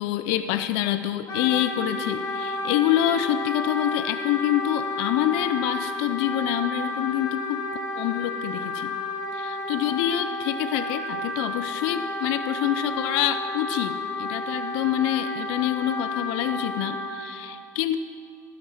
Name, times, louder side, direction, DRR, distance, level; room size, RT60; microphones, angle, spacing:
voice 1, 0.0-7.6 8.0-8.9 9.3-18.0, left 12 dB, 65° left, 11 dB, 0.5 m, -26 dB
Wind instrument woodwind instrument, 1.3-17.1, left 2 dB, 40° left, 2.7 m, -31 dB
15.5 x 5.8 x 5.7 m, 2.1 s
hypercardioid pair, 90°, 9 cm